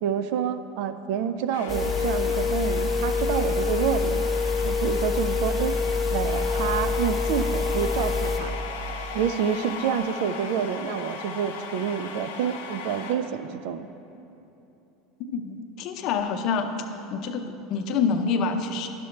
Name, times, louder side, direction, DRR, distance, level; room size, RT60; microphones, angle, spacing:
voice 1, 0.0-4.2 4.6-5.8 6.1-8.6 9.1-13.9, right 8 dB, 70° right, 11 dB, 0.4 m, -28 dB
sound 1, 1.5-13.1, left 5 dB, 80° left, 0.9 m, -37 dB
sound 2, 1.7-8.4, left 4 dB, ahead, 0.9 m, -26 dB
voice 2, 15.3-18.9, left 5 dB, 55° left, 6 dB, 0.6 m, -27 dB
10.5 x 6.8 x 3.2 m, 2.9 s
hypercardioid pair, 95°, 0 cm